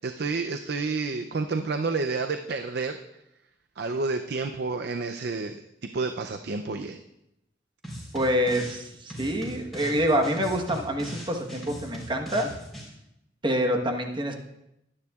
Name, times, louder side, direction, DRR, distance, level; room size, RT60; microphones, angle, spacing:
voice 1, 0.0-3.0 3.8-5.6 5.9-7.0, right 3 dB, 60° right, 7 dB, 0.5 m, -29 dB
sound 1, 7.8-8.8 9.1-12.9, equal, ahead, 3.8 m, -39 dB
voice 2, 8.1-12.5 13.4-14.4, equal, 25° right, 3 dB, 1.2 m, -26 dB
22.0 x 9.7 x 2.4 m, 0.86 s
head